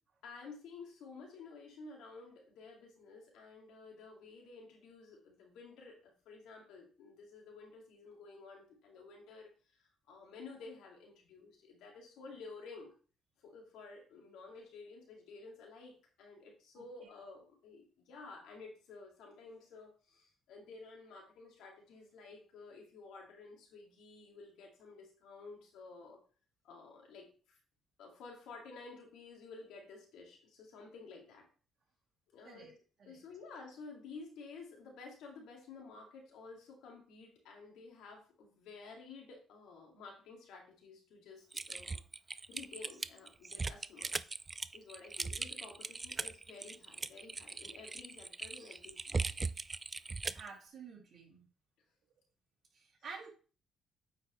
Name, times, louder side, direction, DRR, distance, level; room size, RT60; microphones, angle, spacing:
voice 1, 0.2-12.9 13.4-15.9 16.2-26.2 26.6-27.6 28.0-31.5 32.3-32.8 33.1-42.0 42.5-44.2 44.7-49.3, left 4 dB, 90° left, 1 dB, 2.1 m, -52 dB
Typing, 41.5-50.5, right 4 dB, 25° right, 0.3 m, -39 dB
voice 2, 50.3-51.4 52.7-53.3, right 5 dB, 55° right, 0 dB, 2.4 m, -50 dB
8.8 x 4.7 x 3.1 m, 0.38 s
cardioid pair, 90°, 0 cm